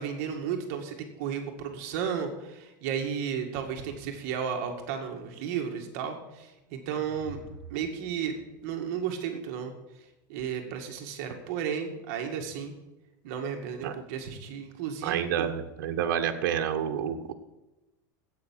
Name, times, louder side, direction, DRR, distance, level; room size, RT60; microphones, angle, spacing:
voice 1, 0.0-7.4 7.7-8.3 8.6-9.7 10.3-12.7 13.2-15.5, right 7 dB, 50° right, 3 dB, 1.9 m, -33 dB
sound 1, 6.4-9.8, right 2 dB, 5° right, 1.8 m, -50 dB
voice 2, 15.0-17.3, right 9 dB, 70° right, 5 dB, 1.4 m, -29 dB
10.5 x 8.4 x 9.0 m, 1.0 s
supercardioid pair, 180°, 11 cm